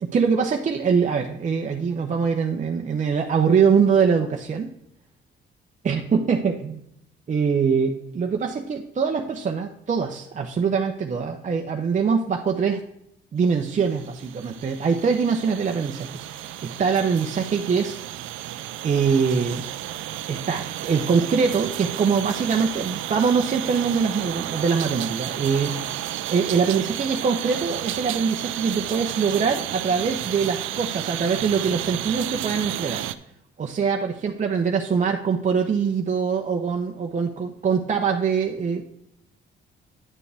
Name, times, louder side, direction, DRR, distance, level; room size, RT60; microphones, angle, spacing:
voice 1, 0.0-4.7 5.8-6.8 7.3-12.8 13.3-18.0 18.8-19.6 20.3-26.0 26.3-33.0 33.6-38.8, right 6 dB, 40° right, 2 dB, 0.8 m, -23 dB
sound 1, 13.5-33.2, right 13 dB, 85° right, 0.5 m, -32 dB
9.9 x 6.9 x 3.4 m, 0.75 s
cardioid pair, 90°, 20 cm